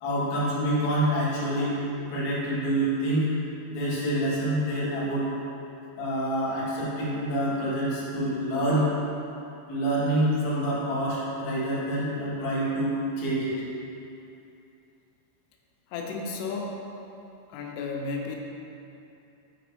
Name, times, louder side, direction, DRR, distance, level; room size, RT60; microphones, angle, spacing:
voice 1, 0.0-1.8 2.1-3.3 3.7-5.3 6.0-8.9 9.7-13.6, right 1 dB, 70° left, -8 dB, 1.7 m, -27 dB
voice 2, 15.9-16.9 17.5-18.4, left 4 dB, 85° left, 0 dB, 3.2 m, -33 dB
8.5 x 4.9 x 3.2 m, 2.7 s
omnidirectional pair, 5.7 m